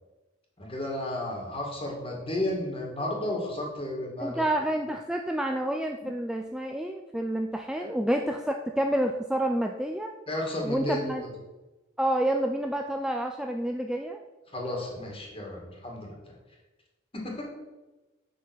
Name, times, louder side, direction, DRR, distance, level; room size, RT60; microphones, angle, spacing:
voice 1, 0.6-4.4 7.8-7.9 10.3-11.3 14.5-16.2 17.2-17.4, left 1 dB, 30° left, 0 dB, 2.1 m, -33 dB
voice 2, 4.2-10.1 10.6-11.2 12.0-14.2, right 1 dB, 5° right, 3 dB, 0.4 m, -29 dB
7.1 x 5.8 x 6.2 m, 1.1 s
head